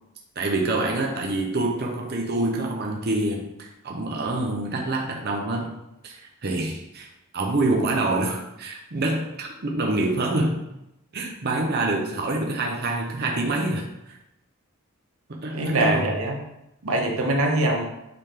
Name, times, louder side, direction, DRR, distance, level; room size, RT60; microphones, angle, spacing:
voice 1, 0.4-5.8 6.0-7.1 7.3-10.6 11.1-13.9 15.3-16.1, right 2 dB, 50° right, 0 dB, 0.8 m, -26 dB
voice 2, 15.5-16.3 16.8-17.9, right 2 dB, 80° right, 1 dB, 1.1 m, -23 dB
8.1 x 3.6 x 3.4 m, 0.87 s
head